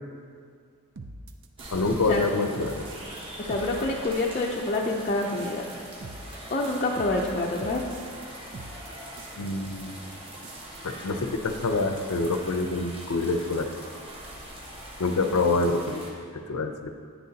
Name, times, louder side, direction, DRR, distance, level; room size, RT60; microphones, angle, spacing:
sound 1, 1.0-3.2 3.5-4.3 4.6-8.2 8.5-9.5 9.8-9.9 10.1-10.8, right 2 dB, 55° right, 0.6 m, -43 dB
Amb - Pluja i nens, 1.6-16.1, right 1 dB, 25° right, 1.2 m, -42 dB
voice 1, 1.7-2.8 9.4-10.0 10.8-13.7 15.0-16.0 16.5-16.9, left 3 dB, 85° left, 6 dB, 0.7 m, -26 dB
voice 2, 3.4-5.7 6.5-7.9, left 2 dB, 35° left, -3 dB, 0.5 m, -27 dB
10.5 x 9.2 x 2.8 m, 2.2 s
head